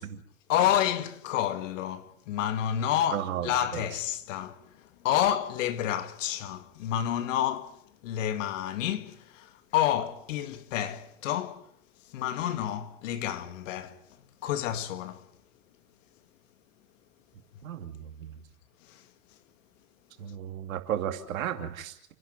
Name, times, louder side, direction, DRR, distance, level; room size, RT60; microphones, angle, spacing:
voice 1, 0.5-4.7 5.0-7.7 8.0-11.6 12.1-14.0 14.4-15.2 18.9-19.0, left 11 dB, 60° left, 2.0 m, -29 dB
voice 2, 3.1-3.9 17.6-18.4 20.2-22.1, right 10 dB, 65° right, 2.8 m, -34 dB
29.0 x 11.0 x 9.2 m
hypercardioid pair, 100°, 44 cm